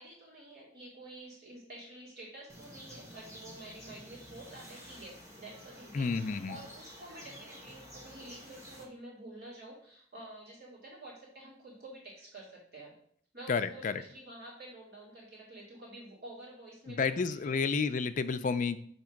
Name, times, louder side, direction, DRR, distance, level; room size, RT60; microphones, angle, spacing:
voice 1, 0.0-12.9 13.3-17.9, right 1 dB, 60° right, -5 dB, 2.2 m, -49 dB
sound 1, 2.5-8.8, equal, 15° right, 1.3 m, -51 dB
voice 2, 5.9-6.6 13.5-14.0 16.9-18.8, left 5 dB, 45° left, 10 dB, 0.4 m, -31 dB
7.2 x 2.9 x 5.7 m, 0.62 s
head